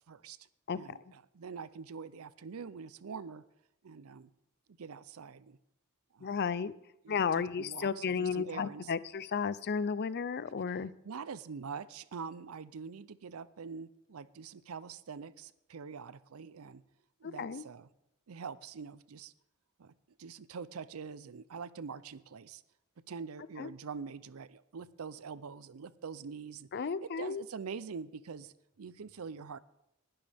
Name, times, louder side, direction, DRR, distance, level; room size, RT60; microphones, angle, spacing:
voice 1, 0.1-0.4 0.7-3.4 3.8-4.3 4.8-5.6 6.1-6.4 7.0-8.9 11.0-16.8 17.2-17.9 18.3-19.3 19.8-19.9 20.2-22.6 23.1-29.6, right 5 dB, 75° right, 17 dB, 0.5 m, -44 dB
voice 2, 6.2-6.7 7.1-10.9 17.2-17.6 23.6-23.7 26.7-27.4, left 6 dB, 50° left, 17 dB, 0.5 m, -33 dB
20.0 x 11.5 x 3.5 m, 0.83 s
head